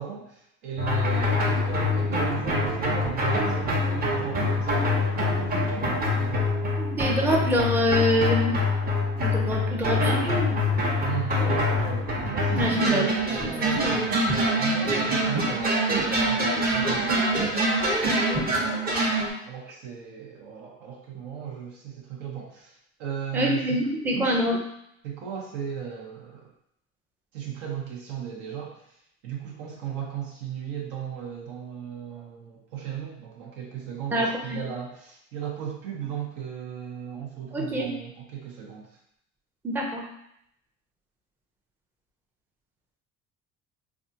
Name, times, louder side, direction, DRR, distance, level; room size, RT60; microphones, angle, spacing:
voice 1, 0.0-6.5 11.0-14.2 14.6-17.3 18.4-18.6 19.4-23.8 24.1-24.4 25.0-26.5 27.3-28.9 29.2-39.0, right 8 dB, 80° right, -1 dB, 1.0 m, -36 dB
sound 1, 0.8-19.3, left 1 dB, 30° right, 0.8 m, -25 dB
voice 2, 6.8-8.5 9.2-10.5 12.5-13.1 13.4-13.5 13.8-13.9 18.0-18.4 23.3-24.6 34.1-34.6 37.5-37.9 39.6-40.1, equal, 5° right, -1 dB, 0.5 m, -25 dB
3.4 x 2.5 x 2.7 m, 0.74 s
cardioid pair, 120°, 30 cm